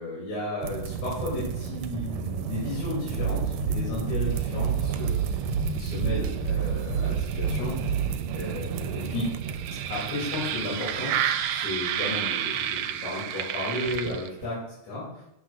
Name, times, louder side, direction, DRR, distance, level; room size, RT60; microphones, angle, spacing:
voice 1, 0.0-9.3 9.9-11.2 11.5-15.2, left 2 dB, 70° left, -8 dB, 4.2 m, -34 dB
sound 1, 0.6-14.5, right 8 dB, 75° right, 1.7 m, -31 dB
sound 2, 3.1-8.1, right 6 dB, 90° left, 5.4 m, -29 dB
13.5 x 8.0 x 2.5 m, 0.84 s
omnidirectional pair, 3.4 m